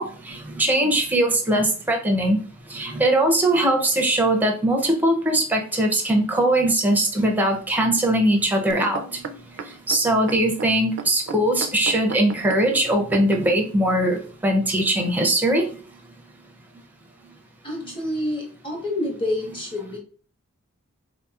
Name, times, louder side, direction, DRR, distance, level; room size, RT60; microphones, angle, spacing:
voice 1, 0.0-2.4 2.7-9.0 9.9-15.7, right 1 dB, 10° right, 2 dB, 0.5 m, -21 dB
sound 1, 8.7-13.6 14.3-14.4, right 4 dB, 55° right, 0.3 m, -35 dB
voice 2, 17.6-20.0, left 1 dB, 25° left, 0 dB, 1.1 m, -28 dB
3.9 x 2.8 x 2.3 m, 0.40 s
head